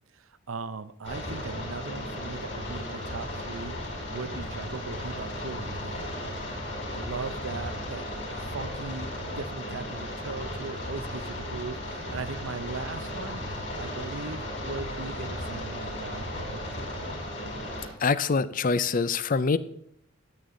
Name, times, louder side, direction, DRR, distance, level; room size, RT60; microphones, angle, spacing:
voice 1, 0.1-6.1 6.9-8.1 8.5-9.1 9.4-17.0, right 4 dB, 85° right, 14 dB, 0.7 m, -39 dB
sound 1, 1.0-17.9, left 1 dB, 65° left, 5.0 m, -35 dB
voice 2, 18.0-19.6, left 4 dB, 45° left, 16 dB, 0.5 m, -24 dB
14.0 x 9.4 x 3.8 m, 0.67 s
head